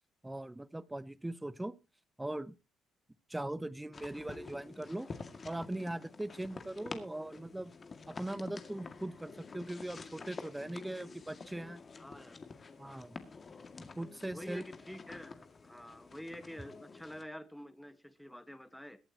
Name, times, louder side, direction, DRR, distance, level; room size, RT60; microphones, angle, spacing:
voice 1, 0.2-1.8 2.2-2.5 3.3-5.1 5.4-7.7 8.1-11.8 12.8-13.2 13.8-14.6, right 1 dB, 10° right, 18 dB, 0.8 m, -40 dB
sound 1, 3.9-17.2, left 4 dB, 35° left, 2.0 m, -49 dB
voice 2, 12.0-12.4 12.8-13.1 14.3-19.0, equal, 5° left, 12 dB, 1.4 m, -48 dB
22.5 x 8.8 x 2.9 m, 0.29 s
supercardioid pair, 65°, 0 cm